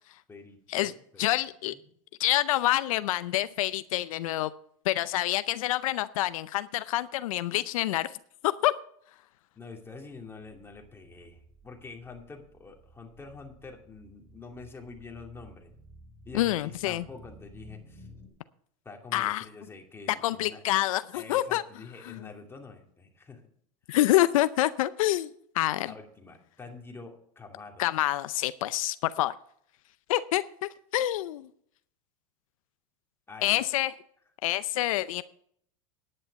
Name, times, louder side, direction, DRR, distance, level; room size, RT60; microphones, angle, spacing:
voice 1, 0.3-1.4 1.7-1.9 9.5-15.7 16.3-18.1 18.8-20.6 21.1-23.4 25.8-27.8 33.3-33.6, left 4 dB, 15° left, 2 dB, 2.5 m, -46 dB
voice 2, 1.2-1.7 2.2-4.5 4.9-8.1 8.4-8.7 16.3-17.0 19.1-19.4 20.2-21.6 22.1-22.3 23.9-25.3 25.5-25.9 27.8-29.3 30.1-31.5 33.4-33.9 34.4-35.2, left 15 dB, 85° left, 15 dB, 0.6 m, -27 dB
sound 1, 11.1-18.3, left 1 dB, 15° right, 3.8 m, -54 dB
10.5 x 9.8 x 5.3 m, 0.64 s
supercardioid pair, 120°, 17 cm